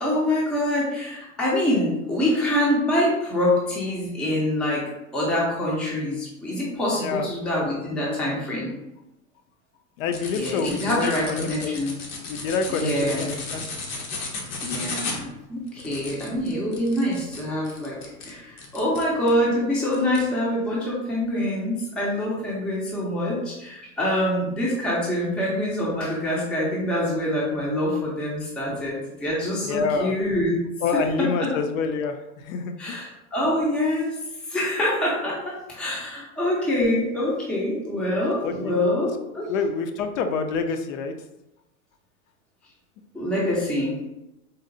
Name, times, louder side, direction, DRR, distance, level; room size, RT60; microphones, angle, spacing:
voice 1, 0.0-4.8 5.1-8.7 10.4-11.9 12.7-13.3 14.6-18.0 18.2-30.6 32.8-34.2 34.5-39.5 43.1-44.0, left 1 dB, ahead, -5 dB, 0.4 m, -25 dB
voice 2, 6.9-7.3 10.0-11.8 12.3-13.6 28.7-28.8 29.6-30.1 30.8-33.1 38.4-38.8 39.5-41.1, left 5 dB, 65° left, 7 dB, 0.5 m, -27 dB
sound 1, 10.1-19.4 19.9-20.3, left 3 dB, 85° left, 0.9 m, -35 dB
3.9 x 2.0 x 2.5 m, 0.92 s
supercardioid pair, 125°, 44 cm